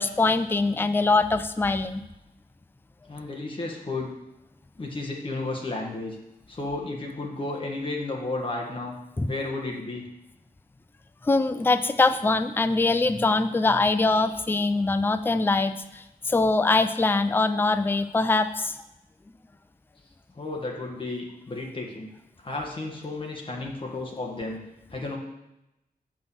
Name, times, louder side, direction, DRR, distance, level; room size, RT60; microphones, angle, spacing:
voice 1, 0.0-2.0 9.2-9.3 11.2-18.7, left 3 dB, 15° left, 10 dB, 0.4 m, -23 dB
voice 2, 3.1-4.1 4.8-6.2 6.5-8.9 9.3-10.1 20.3-22.1 22.4-24.6 24.9-25.2, left 2 dB, 30° left, -1 dB, 1.4 m, -33 dB
6.9 x 5.4 x 6.9 m, 0.91 s
wide cardioid pair, 150°, 16 cm